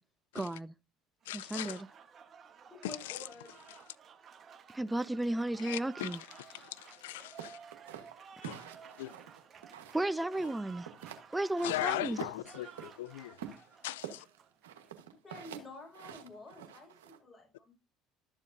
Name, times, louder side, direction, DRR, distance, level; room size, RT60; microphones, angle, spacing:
voice 1, 0.3-0.7 1.3-1.9 4.7-6.2 6.5-6.6 9.9-10.8 11.3-12.2, right 1 dB, 10° right, 0.4 m, -34 dB
Applause, 1.2-14.9, right 7 dB, 45° right, 1.2 m, -55 dB
voice 2, 1.3-1.8 3.1-3.2 5.6-6.1 6.4-7.6 8.4-8.6 9.0-9.1 11.6-13.4 13.8-14.2, left 15 dB, 80° left, 0.3 m, -38 dB
voice 3, 2.7-3.6 10.2-10.5 15.2-17.7, left 2 dB, 25° left, 5.2 m, -49 dB
sound 1, 7.4-10.1 10.3-11.3 11.6-12.9 13.4-17.2, right 9 dB, 85° right, 1.2 m, -47 dB
12.0 x 7.2 x 2.6 m
hypercardioid pair, 70°, 0 cm